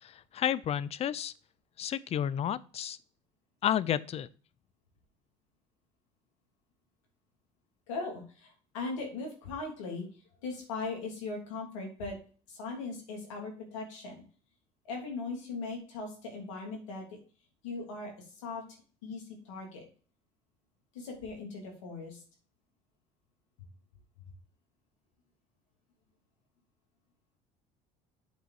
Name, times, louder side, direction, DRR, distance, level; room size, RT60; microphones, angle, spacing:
voice 1, 0.0-1.3 1.8-3.0 3.6-4.3, left 10 dB, 40° left, 18 dB, 0.5 m, -31 dB
voice 2, 7.9-10.1 10.4-12.2 12.5-14.2 14.8-17.2 17.6-18.6 19.0-19.8 20.9-22.2, left 3 dB, 90° left, 1 dB, 2.7 m, -39 dB
8.2 x 4.1 x 4.7 m, 0.39 s
supercardioid pair, 85°, 16 cm